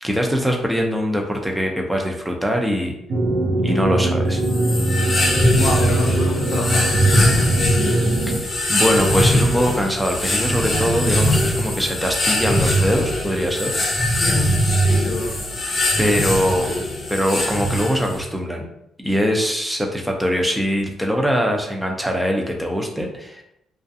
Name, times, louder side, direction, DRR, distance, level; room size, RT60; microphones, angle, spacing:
voice 1, 0.0-2.9 3.6-4.4 8.4-13.7 16.0-18.7 19.0-23.4, equal, 5° right, 1 dB, 0.5 m, -22 dB
sound 1, 3.1-8.4, right 2 dB, 60° right, 0.5 m, -22 dB
sound 2, 4.4-18.3, equal, 35° left, 0.8 m, -21 dB
voice 2, 5.5-7.7 14.3-14.5 15.0-15.4, left 3 dB, 85° left, 2 dB, 0.5 m, -28 dB
2.5 x 2.2 x 2.6 m, 0.79 s
cardioid pair, 90°, 0 cm